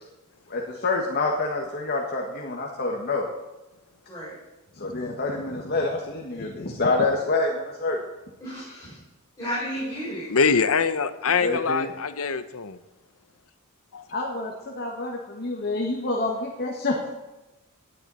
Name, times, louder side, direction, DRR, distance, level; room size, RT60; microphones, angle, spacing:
voice 1, 0.5-3.3 4.7-8.0 11.4-11.9 14.1-17.1, left 3 dB, 50° left, -1 dB, 1.9 m, -27 dB
voice 2, 8.4-9.0 9.4-10.3, equal, 15° left, -10 dB, 6.1 m, -32 dB
voice 3, 10.3-12.8 13.9-14.0, left 5 dB, 70° left, 12 dB, 0.9 m, -23 dB
19.5 x 10.5 x 4.3 m, 1.0 s
head